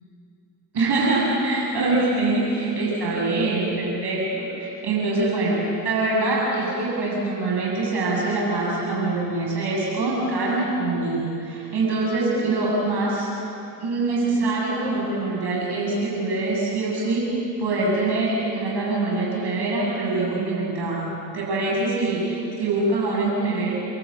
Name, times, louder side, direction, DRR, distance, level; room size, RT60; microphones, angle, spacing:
voice 1, 0.7-5.6 5.8-13.3 13.8-17.3 17.6-21.1 21.3-23.7, right 2 dB, 65° right, -3 dB, 6.8 m, -24 dB
29.0 x 13.5 x 8.3 m, 2.7 s
supercardioid pair, 55°, 43 cm